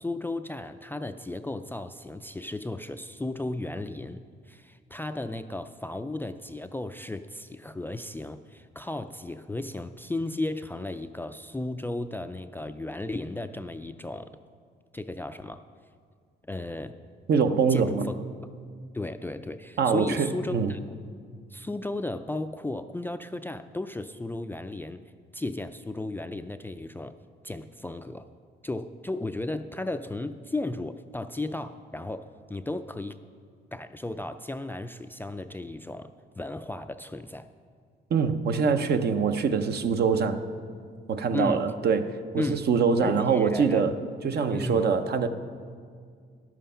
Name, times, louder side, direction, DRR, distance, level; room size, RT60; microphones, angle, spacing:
voice 1, 0.0-4.2 4.5-14.3 14.9-15.7 16.5-16.9 17.7-18.0 18.9-20.8 21.5-25.0 25.3-27.2 27.4-28.3 28.6-33.2 33.7-37.5 41.3-41.7 42.4-42.7 43.0-43.8 44.5-44.9, left 2 dB, 10° left, 9 dB, 0.3 m, -34 dB
voice 2, 17.3-18.1 19.8-20.7 38.1-40.4 41.1-44.0 44.2-45.3, right 5 dB, 55° right, 8 dB, 0.7 m, -24 dB
11.5 x 7.5 x 5.6 m, 2.1 s
cardioid pair, 90°, 20 cm